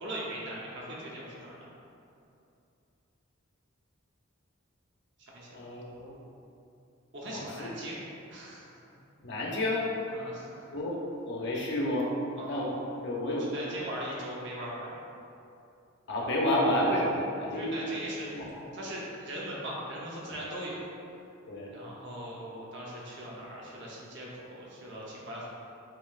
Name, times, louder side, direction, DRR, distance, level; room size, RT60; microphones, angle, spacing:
voice 1, 0.0-1.7 5.2-5.5 7.1-8.0 8.3-8.8 10.1-10.7 12.4-12.7 13.2-14.9 17.5-18.4 18.7-20.9 21.7-25.5, right 1 dB, 55° right, -5 dB, 0.9 m, -40 dB
voice 2, 5.5-6.2 7.3-7.7 9.2-9.9 10.7-12.1 12.4-13.6 16.1-17.8 18.3-18.7 21.5-21.7, left 1 dB, 55° left, -3 dB, 0.8 m, -30 dB
7.4 x 2.9 x 2.5 m, 2.7 s
head